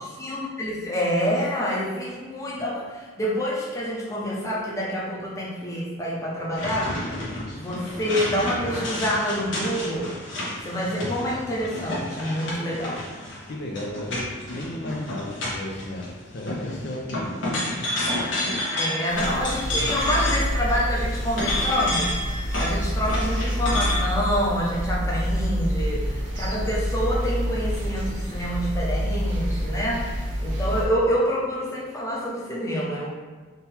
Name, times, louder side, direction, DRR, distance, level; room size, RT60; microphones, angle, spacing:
voice 1, 0.2-7.0 7.5-10.1 10.6-13.0 18.8-33.1, equal, 15° left, -5 dB, 0.7 m, -27 dB
sound 1, 6.5-16.1 16.4-20.7 21.0-24.0, left 1 dB, 70° left, 1.3 m, -30 dB
voice 2, 13.5-17.6 18.0-18.1 18.7-19.2 19.6-19.9, left 1 dB, 55° left, -1 dB, 0.5 m, -35 dB
sound 2, 19.1-30.9, equal, 70° right, 0.9 m, -27 dB
3.8 x 2.8 x 4.3 m, 1.4 s
head